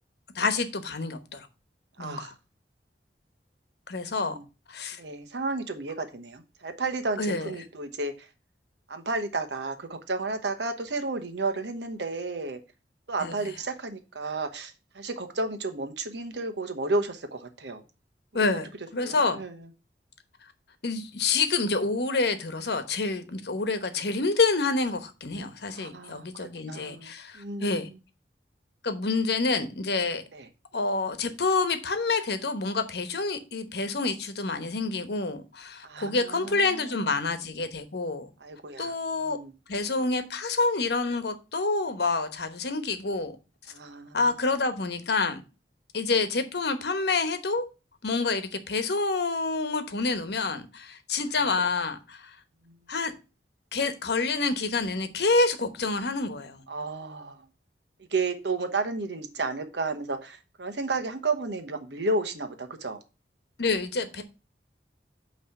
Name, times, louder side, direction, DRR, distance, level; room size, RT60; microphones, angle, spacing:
voice 1, 0.3-1.5 2.0-2.3 3.9-4.4 4.7-5.0 7.2-7.5 13.2-13.5 18.3-19.4 20.8-27.9 28.8-30.2 30.7-38.3 38.8-39.4 39.7-43.4 44.1-45.4 45.9-47.7 48.0-52.4 52.9-53.1 53.7-56.6 63.6-64.2, left 3 dB, 65° left, 1.0 m, -28 dB
voice 2, 2.0-2.3 4.2-4.4 5.0-8.3 8.9-12.6 13.1-17.8 18.3-18.6 19.0-19.7 25.7-26.3 26.6-28.0 30.3-30.5 35.8-37.0 38.4-38.9 39.2-39.5 43.7-44.2 52.7-52.8 56.7-57.4 58.1-63.0, right 3 dB, 75° right, 1.1 m, -32 dB
8.5 x 3.2 x 5.8 m
head